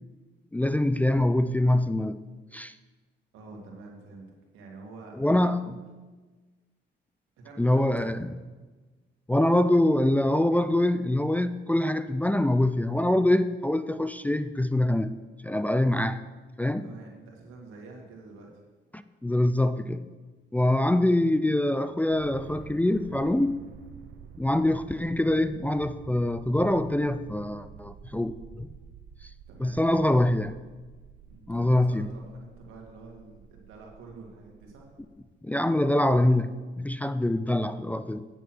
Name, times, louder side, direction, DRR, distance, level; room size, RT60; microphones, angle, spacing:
voice 1, 0.5-2.2 2.5-2.7 5.2-5.6 7.6-8.2 9.3-15.2 15.4-16.2 16.6-16.9 18.9-20.0 20.5-23.6 24.4-28.7 29.6-30.5 31.5-32.1 35.4-38.3, left 1 dB, 10° left, 11 dB, 0.3 m, -24 dB
voice 2, 3.3-4.3 4.5-5.5 7.4-8.2 16.8-18.5 29.5-29.8 31.3-34.9, right 3 dB, 90° right, 0 dB, 2.2 m, -47 dB
sound 1, 22.1-35.1, right 7 dB, 70° right, 0.7 m, -49 dB
9.3 x 6.9 x 6.1 m, 1.3 s
cardioid pair, 90°, 20 cm